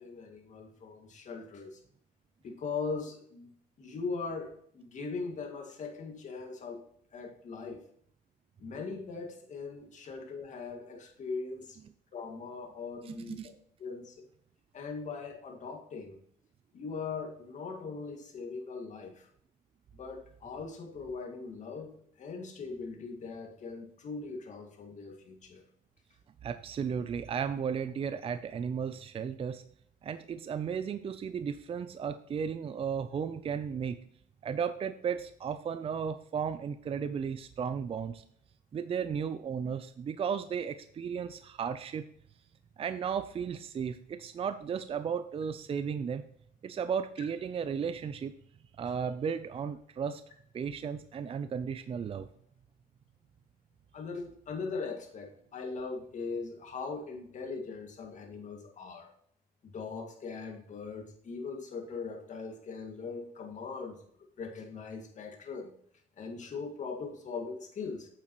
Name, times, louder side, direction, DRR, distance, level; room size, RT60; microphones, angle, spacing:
voice 1, 0.0-1.8 2.4-3.5 3.8-6.9 7.1-7.8 8.6-11.8 12.1-13.4 13.8-14.3 14.7-16.2 16.7-19.3 19.9-25.6 53.9-59.1 59.6-64.0 64.4-65.7 66.2-68.1, left 4 dB, 45° left, 2 dB, 2.2 m, -40 dB
voice 2, 13.0-13.5 26.4-29.6 30.0-34.0 34.4-38.2 38.7-42.0 42.8-46.2 46.6-48.4 48.8-50.2 50.5-52.3, right 7 dB, 35° right, 11 dB, 0.5 m, -34 dB
9.5 x 7.2 x 3.1 m, 0.66 s
cardioid pair, 110°, 17 cm